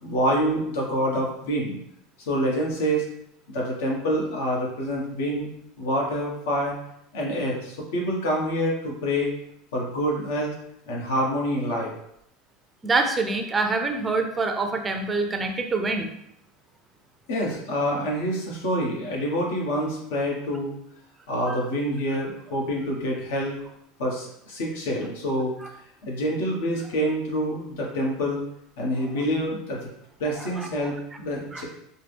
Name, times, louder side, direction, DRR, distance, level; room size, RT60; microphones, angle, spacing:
voice 1, 0.0-1.8 2.3-3.0 3.5-5.5 5.8-6.8 7.1-9.3 9.7-10.5 10.9-11.9 17.3-20.8 21.3-23.6 24.0-25.5 26.0-28.4 28.8-29.9 30.2-31.6, equal, 85° left, -2 dB, 1.2 m, -26 dB
voice 2, 12.8-16.1 30.6-30.7 31.5-31.6, right 3 dB, 20° right, 4 dB, 0.4 m, -25 dB
4.4 x 2.2 x 3.4 m, 0.75 s
supercardioid pair, 135°, 0 cm